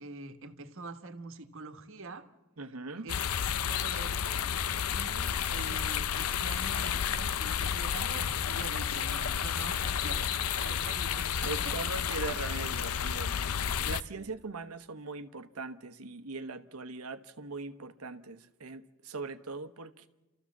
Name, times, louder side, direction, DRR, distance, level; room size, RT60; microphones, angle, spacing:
voice 1, 0.0-2.3 3.0-3.1 3.6-4.5 4.9-11.7 14.1-14.3, right 3 dB, 65° right, 8 dB, 1.4 m, -45 dB
voice 2, 2.6-3.1 11.4-20.1, right 3 dB, 85° right, 11 dB, 1.1 m, -40 dB
sound 1, 3.1-14.0, left 8 dB, 90° left, 0.6 m, -31 dB
30.0 x 14.0 x 7.3 m, 1.1 s
head